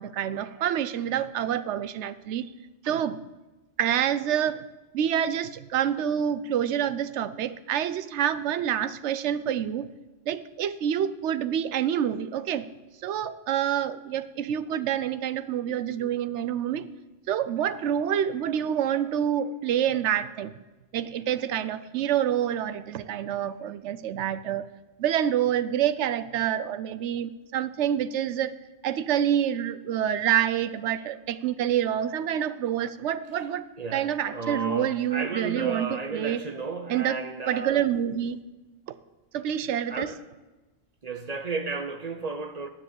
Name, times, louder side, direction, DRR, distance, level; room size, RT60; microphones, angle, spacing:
voice 1, 0.0-2.5 2.8-3.2 3.8-4.6 4.9-9.9 10.3-12.7 13.0-16.9 17.3-20.6 20.9-24.7 25.0-28.5 28.8-33.6 33.9-36.4 36.9-37.2 37.5-38.4 39.3-40.1, right 10 dB, 70° right, 0.9 m, -27 dB
voice 2, 33.8-37.8 39.9-40.2 41.0-42.7, right 4 dB, 40° right, 0.7 m, -33 dB
10.0 x 7.1 x 8.0 m
omnidirectional pair, 1.3 m